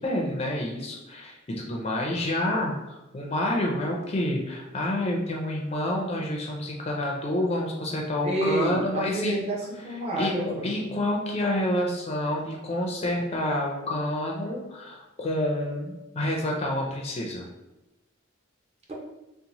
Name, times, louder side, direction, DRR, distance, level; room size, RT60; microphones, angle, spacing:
voice 1, 0.0-9.3 10.1-17.4, left 1 dB, 30° left, -1 dB, 0.4 m, -28 dB
voice 2, 8.2-10.7 18.9-19.0, right 1 dB, 30° right, -4 dB, 0.7 m, -29 dB
2.9 x 2.1 x 3.9 m, 1.0 s
head